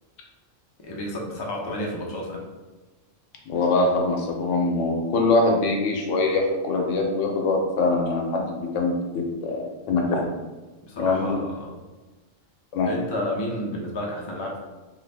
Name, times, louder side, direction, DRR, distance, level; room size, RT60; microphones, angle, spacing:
voice 1, 0.8-2.4 10.9-11.8 12.8-14.6, left 1 dB, 45° left, -2 dB, 0.3 m, -31 dB
voice 2, 3.5-10.3 10.9-11.4 12.7-12.9, left 3 dB, 75° left, 1 dB, 0.9 m, -23 dB
2.7 x 2.5 x 3.3 m, 1.2 s
omnidirectional pair, 1.3 m